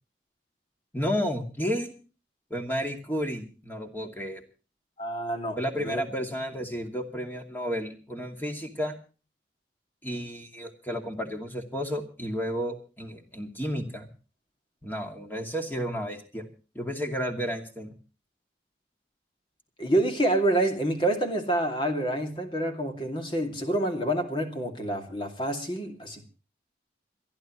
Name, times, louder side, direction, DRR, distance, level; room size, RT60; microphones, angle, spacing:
voice 1, 0.9-1.9 2.5-4.4 5.6-9.0 10.0-14.1 14.8-16.4 16.7-17.9, equal, 10° left, 3 dB, 2.5 m, -32 dB
voice 2, 5.0-6.0 19.8-26.3, right 1 dB, 30° left, 4 dB, 2.4 m, -27 dB
28.0 x 11.5 x 3.1 m, 0.36 s
head